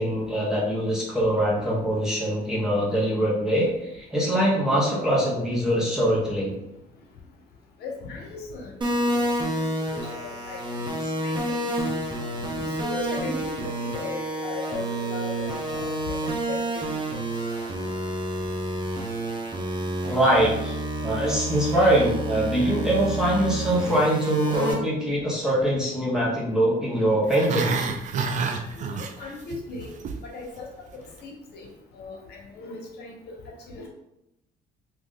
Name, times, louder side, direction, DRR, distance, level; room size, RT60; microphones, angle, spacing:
voice 1, 0.0-6.6 20.0-27.9, right 1 dB, 5° right, -5 dB, 1.1 m, -23 dB
voice 2, 7.8-8.7 9.0-9.3 9.8-10.6 11.2-11.6 11.9-12.0 12.6-16.8 17.1-17.2 17.5-17.6 24.7-24.8 26.9-27.0 28.8-29.9 30.3-31.7 31.9-33.4 33.7-33.9, left 4 dB, 75° left, 0 dB, 1.0 m, -37 dB
sound 1, 8.8-24.7, right 1 dB, 25° right, 0.9 m, -29 dB
Growling, 27.2-29.6 29.8-30.2 30.6-30.7, right 5 dB, 45° right, 0.5 m, -28 dB
2.9 x 2.6 x 3.7 m, 0.87 s
cardioid pair, 110°, 17 cm